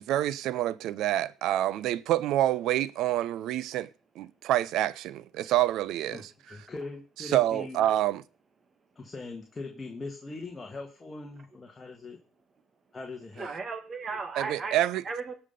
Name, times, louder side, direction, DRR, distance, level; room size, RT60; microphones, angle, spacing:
voice 1, 0.0-3.9 4.2-6.2 7.2-8.2 14.4-15.0, right 13 dB, 70° right, 0.6 m, -27 dB
voice 2, 6.5-7.8 8.9-12.2 12.9-13.5, left 3 dB, 25° left, 1.7 m, -41 dB
voice 3, 13.4-14.8 15.1-15.3, right 4 dB, 35° right, 2.0 m, -35 dB
17.0 x 5.8 x 5.2 m
cardioid pair, 95°, 0 cm